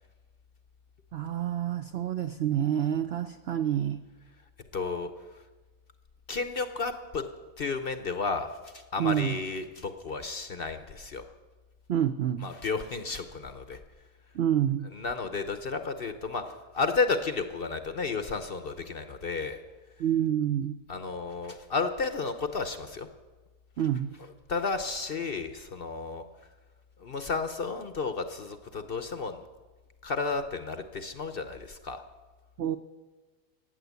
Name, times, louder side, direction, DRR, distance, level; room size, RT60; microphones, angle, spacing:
voice 1, 1.1-4.0 9.0-9.4 11.9-12.5 14.3-14.9 20.0-20.8 23.8-24.1 32.6-32.8, right 10 dB, 80° right, 10 dB, 0.5 m, -28 dB
voice 2, 4.7-5.4 6.3-7.2 7.6-11.2 12.4-13.8 14.9-19.6 20.9-23.1 24.5-26.3 27.0-29.4 30.0-32.0, left 4 dB, 50° left, 9 dB, 0.7 m, -32 dB
15.5 x 9.4 x 8.1 m, 1.3 s
omnidirectional pair, 1.7 m